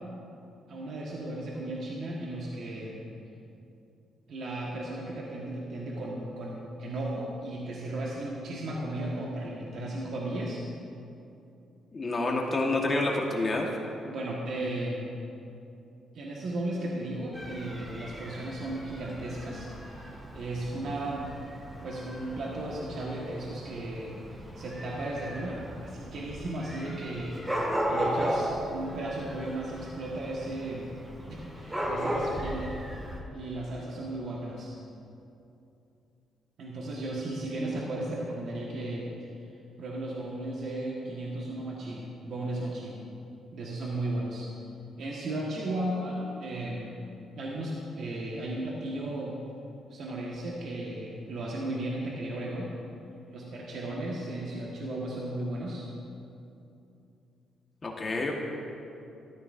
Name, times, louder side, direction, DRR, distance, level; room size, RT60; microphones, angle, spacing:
voice 1, 0.7-3.0 4.3-10.6 14.0-15.0 16.1-21.3 21.8-27.5 27.9-30.9 31.3-32.8 33.3-34.7 36.6-39.3 39.8-43.0 43.5-44.5 45.0-47.0 47.4-49.4 49.9-52.8 53.3-55.9, right 1 dB, 65° right, -4 dB, 1.5 m, -35 dB
voice 2, 11.9-13.7 57.8-58.4, left 2 dB, 35° left, 0 dB, 1.4 m, -28 dB
Dog / Cat, 17.3-33.2, equal, 15° right, 1.8 m, -36 dB
13.5 x 13.0 x 2.6 m, 2.7 s
cardioid pair, 90°, 0 cm